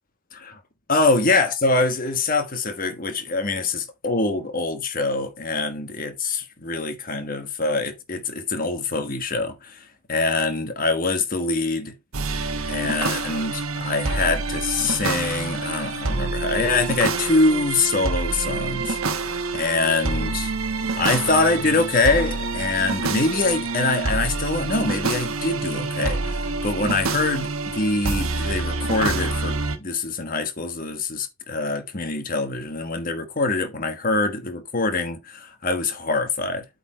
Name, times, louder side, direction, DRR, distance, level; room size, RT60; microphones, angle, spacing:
voice 1, 0.9-9.8 10.1-11.9 12.7-19.0 19.5-20.5 21.0-36.6, left 3 dB, 40° left, 1.3 m, -24 dB
sound 1, 12.1-29.8, right 3 dB, 85° right, 1.0 m, -27 dB
8.3 x 4.1 x 4.3 m
head